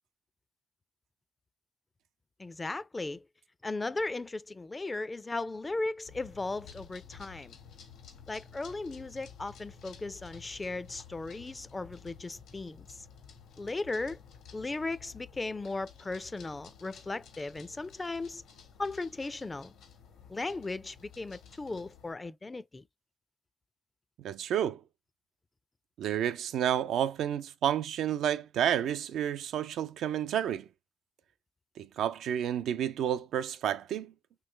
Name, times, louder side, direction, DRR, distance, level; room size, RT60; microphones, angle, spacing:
voice 1, 2.4-3.2 3.6-7.5 8.3-13.1 13.6-14.2 14.5-18.4 18.8-19.7 20.3-22.8, left 3 dB, 20° left, 0.4 m, -37 dB
sound 1, 6.1-22.1, left 7 dB, 90° left, 1.4 m, -53 dB
voice 2, 24.2-24.8 26.0-30.7 31.8-34.1, right 10 dB, 80° right, 0.3 m, -30 dB
3.2 x 3.1 x 3.2 m
cardioid pair, 90°, 0 cm